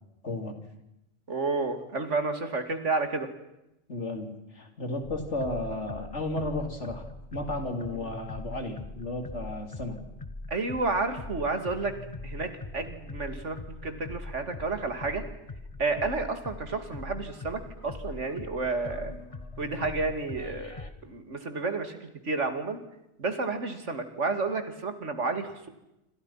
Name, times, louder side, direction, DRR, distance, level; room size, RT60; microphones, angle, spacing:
voice 1, 0.2-0.6 3.9-7.0 7.3-10.0, left 2 dB, 80° left, 6 dB, 3.8 m, -33 dB
voice 2, 1.3-3.3 10.5-12.0 12.2-15.2 15.8-19.1 19.6-20.8 21.0-22.8 23.2-25.7, right 3 dB, 85° right, 8 dB, 2.9 m, -31 dB
sound 1, 5.0-20.9, left 2 dB, 30° left, 1.7 m, -42 dB
27.0 x 26.5 x 5.8 m, 0.88 s
omnidirectional pair, 1.2 m